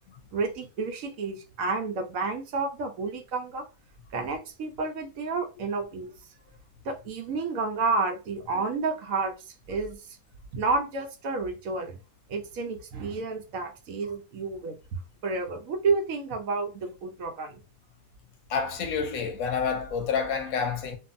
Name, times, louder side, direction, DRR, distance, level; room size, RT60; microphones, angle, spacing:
voice 1, 0.3-3.7 4.1-6.1 6.8-10.2 10.5-12.0 12.3-17.6, right 4 dB, 75° right, 1.0 m, -30 dB
voice 2, 18.5-21.0, left 6 dB, 80° left, 1.1 m, -28 dB
2.6 x 2.5 x 2.5 m
omnidirectional pair, 1.5 m